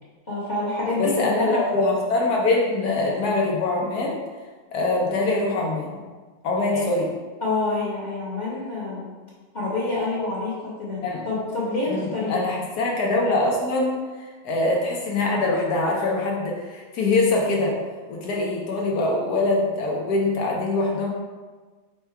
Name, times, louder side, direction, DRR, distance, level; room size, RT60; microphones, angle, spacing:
voice 1, 0.3-1.6 6.7-6.8 7.4-9.1 9.5-12.5, left 2 dB, 30° left, -8 dB, 1.0 m, -27 dB
voice 2, 1.0-4.2 4.7-6.0 6.4-7.1 11.0-11.2 11.9-17.8 18.1-21.1, left 2 dB, 70° left, -1 dB, 1.1 m, -23 dB
4.4 x 2.2 x 4.5 m, 1.4 s
omnidirectional pair, 1.9 m